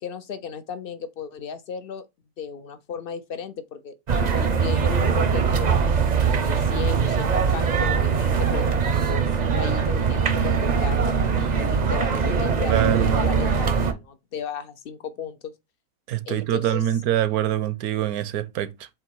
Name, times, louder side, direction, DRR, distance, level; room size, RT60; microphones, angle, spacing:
voice 1, 0.0-2.1 2.4-3.9 4.3-5.9 6.4-11.1 11.6-15.5 16.2-16.8, left 6 dB, 80° left, 0.5 m, -35 dB
sound 1, 4.1-13.9, right 6 dB, 50° right, 0.5 m, -22 dB
voice 2, 12.7-13.2 16.1-18.9, right 12 dB, 75° right, 1.1 m, -24 dB
7.4 x 2.9 x 4.6 m
omnidirectional pair, 1.6 m